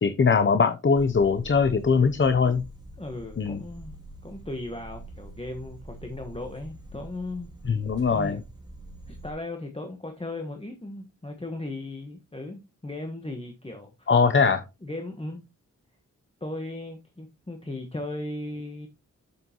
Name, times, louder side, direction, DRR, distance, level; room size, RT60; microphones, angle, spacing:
voice 1, 0.0-2.6 3.4-3.6 7.7-8.4 14.1-14.6, left 5 dB, 40° left, 0.7 m, -21 dB
sound 1, 0.9-9.3, right 2 dB, 15° right, 2.7 m, -45 dB
voice 2, 3.0-4.0 4.2-7.5 8.1-8.4 9.1-14.1 14.8-15.4 16.4-18.9, left 2 dB, 20° left, 1.3 m, -37 dB
8.1 x 7.6 x 3.0 m
wide cardioid pair, 80°, 31 cm